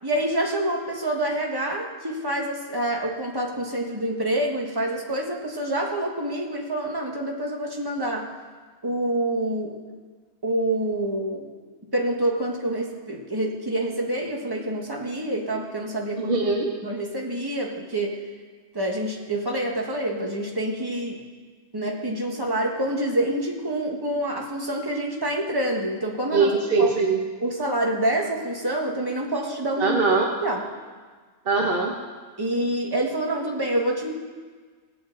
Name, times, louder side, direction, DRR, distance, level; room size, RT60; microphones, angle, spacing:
voice 1, 0.0-8.3 8.8-9.8 10.4-11.5 11.9-16.4 16.8-18.2 18.7-21.2 21.7-26.5 26.8-26.9 27.4-30.0 30.4-30.6 32.4-34.1, right 1 dB, 15° right, 0 dB, 1.5 m, -27 dB
voice 2, 16.2-16.7 26.3-27.3 29.8-30.3 31.4-32.0, right 4 dB, 40° right, 0 dB, 1.3 m, -22 dB
18.0 x 8.6 x 3.9 m, 1.5 s
omnidirectional pair, 1.6 m